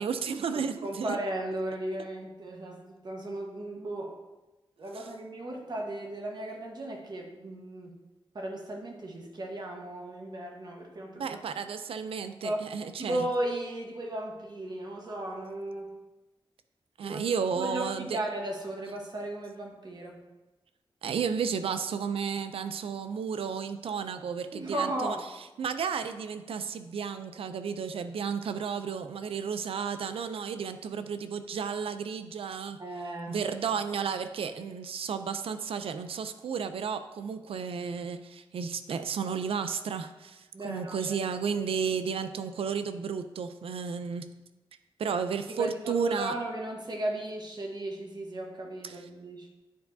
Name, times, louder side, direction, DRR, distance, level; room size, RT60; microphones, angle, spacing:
voice 1, 0.0-1.2 5.0-5.1 11.2-13.3 17.0-18.2 21.0-25.2 25.6-32.8 33.3-44.2 45.0-46.3 48.8-49.0, right 6 dB, 85° right, 10 dB, 0.4 m, -33 dB
voice 2, 0.5-4.2 4.8-8.0 8.3-11.4 12.4-12.7 13.0-15.9 17.0-17.2 17.6-20.2 24.5-25.3 32.8-33.5 40.5-41.2 45.5-49.5, right 1 dB, 50° right, 1 dB, 1.2 m, -35 dB
10.0 x 4.6 x 2.7 m, 1.1 s
wide cardioid pair, 85°, 9 cm